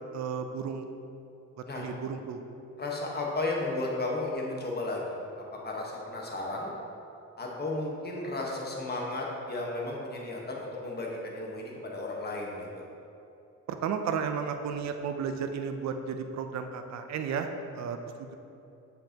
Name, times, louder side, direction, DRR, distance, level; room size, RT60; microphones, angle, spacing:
voice 1, 0.1-0.9 1.7-2.4 13.7-17.5 17.7-18.3, right 6 dB, 65° right, 7 dB, 0.6 m, -33 dB
voice 2, 2.8-5.0 5.4-6.7 7.4-12.8, left 2 dB, 35° left, -2 dB, 1.3 m, -34 dB
7.6 x 5.5 x 2.9 m, 2.8 s
cardioid pair, 90°, 30 cm